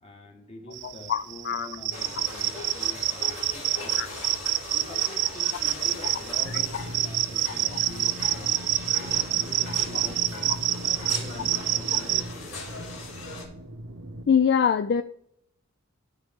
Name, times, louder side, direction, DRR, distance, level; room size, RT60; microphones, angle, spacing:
voice 1, 0.0-4.1 4.7-6.8 7.0-10.5 11.0-12.9, left 1 dB, 30° left, 3 dB, 1.5 m, -46 dB
sound 1, 0.7-12.2, right 15 dB, 55° right, 0.4 m, -27 dB
voice 2, 0.8-1.7 4.0-4.1 7.7-7.8 14.3-15.0, left 7 dB, 50° left, 10 dB, 0.3 m, -24 dB
sound 2, 1.9-13.5, left 3 dB, 70° left, 2.9 m, -39 dB
sound 3, 6.4-14.2, equal, 85° right, 1.0 m, -40 dB
12.5 x 4.9 x 3.6 m, 0.72 s
head